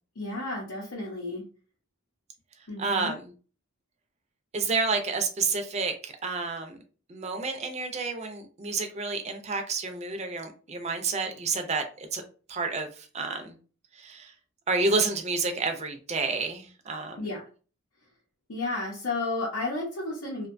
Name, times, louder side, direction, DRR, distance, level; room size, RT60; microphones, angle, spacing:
voice 1, 0.2-1.4 2.7-3.1 17.2-17.4 18.5-20.5, left 2 dB, 85° left, -5 dB, 0.7 m, -32 dB
voice 2, 2.8-3.3 4.5-6.8 7.1-12.2 12.5-13.5 14.0-14.3 14.7-17.3, right 4 dB, 30° right, 5 dB, 0.4 m, -30 dB
2.6 x 2.2 x 2.5 m, 0.37 s
head